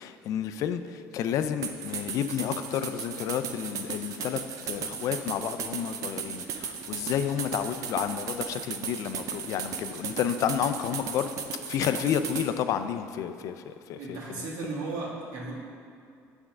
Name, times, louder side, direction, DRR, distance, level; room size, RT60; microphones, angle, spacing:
voice 1, 0.0-11.3 11.7-14.5, left 9 dB, 65° left, 10 dB, 0.4 m, -31 dB
sound 1, 1.6-12.5, right 7 dB, 65° right, 0.6 m, -36 dB
voice 2, 14.0-15.5, right 3 dB, 80° right, -4 dB, 1.6 m, -35 dB
7.5 x 3.5 x 6.0 m, 2.4 s
cardioid pair, 105°, 6 cm